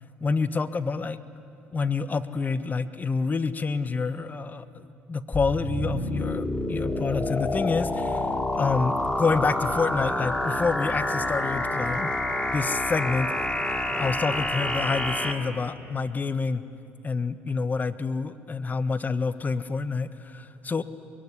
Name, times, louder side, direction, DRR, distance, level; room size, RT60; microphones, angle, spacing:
voice 1, 0.2-1.2 1.7-8.3 8.5-12.1 12.5-13.3 13.7-16.6 17.0-20.8, left 4 dB, 30° left, 12 dB, 1.3 m, -28 dB
sound 1, 5.3-15.3, left 1 dB, 15° left, 3.2 m, -28 dB
24.5 x 22.0 x 10.0 m, 2.7 s
hypercardioid pair, 60°, 5 cm